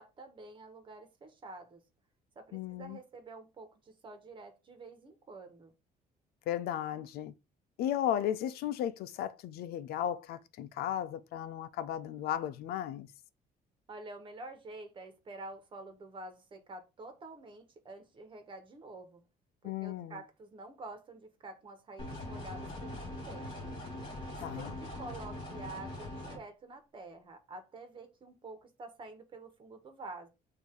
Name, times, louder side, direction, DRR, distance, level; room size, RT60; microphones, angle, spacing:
voice 1, 0.0-1.8 2.3-5.7 13.9-19.2 19.6-23.7 24.3-30.3, right 2 dB, 35° right, 1.5 m, -48 dB
voice 2, 2.5-3.0 6.5-7.3 7.8-13.1 19.6-20.2 24.4-24.8, left 10 dB, 85° left, 0.6 m, -35 dB
sound 1, 22.0-26.4, left 1 dB, 30° left, 3.0 m, -42 dB
8.2 x 2.9 x 4.7 m
cardioid pair, 160°, 16 cm